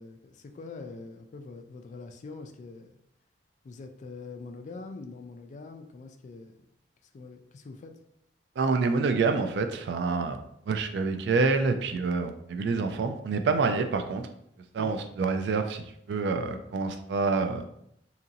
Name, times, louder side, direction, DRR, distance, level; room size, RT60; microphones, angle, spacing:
voice 1, 0.0-2.9 3.6-6.6 7.1-8.0 14.8-14.9, left 3 dB, 45° left, 6 dB, 0.3 m, -44 dB
voice 2, 8.6-10.4 10.7-14.3 14.7-17.6, right 4 dB, 70° right, 7 dB, 0.3 m, -27 dB
2.9 x 2.5 x 2.7 m, 0.74 s
head